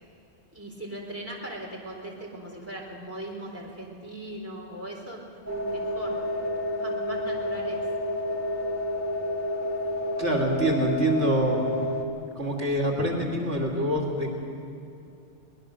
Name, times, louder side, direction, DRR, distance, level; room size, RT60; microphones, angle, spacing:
voice 1, 0.5-5.2 5.5-6.3 6.6-7.8 12.8-13.0, right 1 dB, 10° right, -2 dB, 4.1 m, -39 dB
sound 1, 5.5-12.0, left 1 dB, 40° left, 2.1 m, -29 dB
voice 2, 10.2-11.7 12.4-14.3, right 1 dB, 75° right, -1 dB, 2.8 m, -25 dB
23.5 x 19.5 x 6.6 m, 2.7 s
omnidirectional pair, 1.2 m